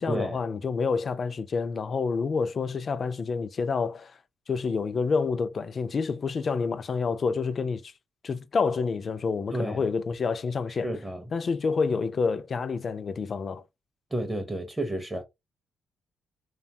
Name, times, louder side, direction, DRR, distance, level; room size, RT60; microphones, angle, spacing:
voice 1, 0.0-4.2 4.5-7.9 8.2-10.9 11.3-13.6, left 5 dB, 45° left, 0.3 m, -28 dB
voice 2, 9.5-9.8 10.7-11.2 14.1-15.2, right 1 dB, 15° right, 0.5 m, -31 dB
2.8 x 2.2 x 2.6 m
cardioid pair, 90°, 0 cm